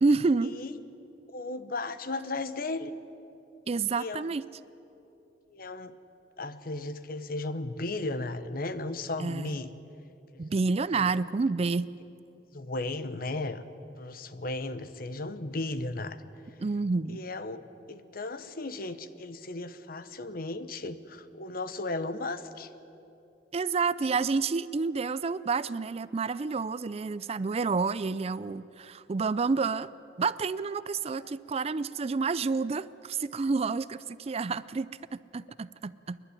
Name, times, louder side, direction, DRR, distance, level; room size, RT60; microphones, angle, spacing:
voice 1, 0.0-0.5 3.7-4.4 9.2-9.5 10.4-11.9 16.6-17.2 23.5-29.9 30.2-36.2, right 4 dB, 35° right, 17 dB, 0.4 m, -29 dB
voice 2, 1.3-2.9 4.0-4.3 5.5-5.9 6.4-9.7 10.3-10.5 10.9-11.2 12.5-13.6 14.0-16.2 17.1-17.6 17.9-22.7 31.2-31.4, left 2 dB, 55° left, 12 dB, 1.0 m, -35 dB
28.5 x 11.5 x 9.9 m, 2.8 s
head